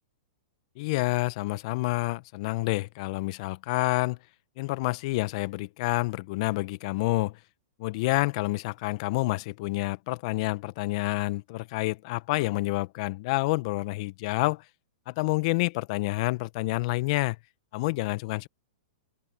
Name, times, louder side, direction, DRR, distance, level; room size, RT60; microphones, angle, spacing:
voice 1, 0.8-4.2 4.6-7.4 7.8-14.6 15.1-17.4 17.7-18.5, left 22 dB, 50° left, 1.1 m, -28 dB
open air
hypercardioid pair, 120°, 4 cm